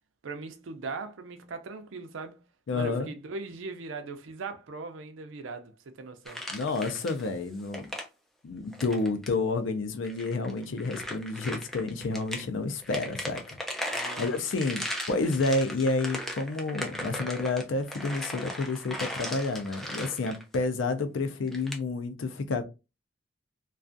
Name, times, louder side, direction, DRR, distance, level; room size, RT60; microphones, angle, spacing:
voice 1, 0.2-2.4 2.7-6.4 13.9-14.8, right 3 dB, 80° right, 0.5 m, -40 dB
voice 2, 2.7-3.1 6.5-7.9 8.4-22.6, left 3 dB, 75° left, 0.4 m, -30 dB
sound 1, 6.3-7.3 7.6-8.1 8.7-9.3 10.0-12.4 12.8-20.7 21.5-21.8, equal, ahead, 0.3 m, -37 dB
2.4 x 2.3 x 2.5 m
head